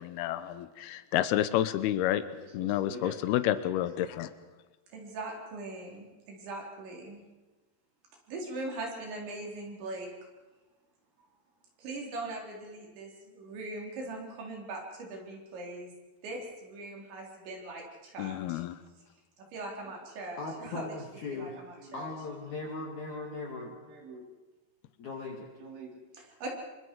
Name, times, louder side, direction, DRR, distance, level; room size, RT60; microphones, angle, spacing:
voice 1, 0.0-2.2 2.5-4.3 18.2-18.8, left 13 dB, 85° left, 12 dB, 2.3 m, -29 dB
voice 2, 2.6-3.5 4.9-7.2 8.3-10.1 11.8-15.9 16.2-18.6 19.4-21.0 21.3-22.1 22.5-24.3 25.6-26.5, right 2 dB, 70° right, 0 dB, 6.2 m, -41 dB
voice 3, 20.4-21.6 21.9-24.0 25.0-25.4, left 3 dB, 50° left, -1 dB, 2.9 m, -39 dB
26.0 x 24.5 x 4.7 m, 1.2 s
omnidirectional pair, 5.5 m